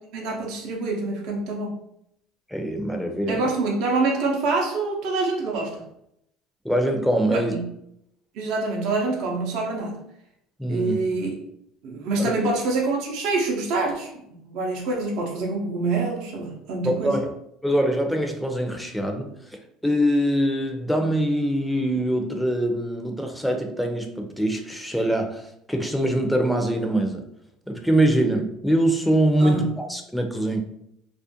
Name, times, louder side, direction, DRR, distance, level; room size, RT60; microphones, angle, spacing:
voice 1, 0.1-1.7 3.3-5.8 7.3-7.6 8.3-10.0 10.7-11.3 11.8-14.1 14.4-17.2 29.4-29.7, right 3 dB, 70° right, -1 dB, 0.6 m, -26 dB
voice 2, 2.5-3.5 6.6-7.5 10.6-11.0 12.2-12.3 16.8-17.3 17.6-27.2 27.7-30.6, right 1 dB, ahead, 3 dB, 0.5 m, -23 dB
2.4 x 2.1 x 2.7 m, 0.76 s
hypercardioid pair, 75°, 0 cm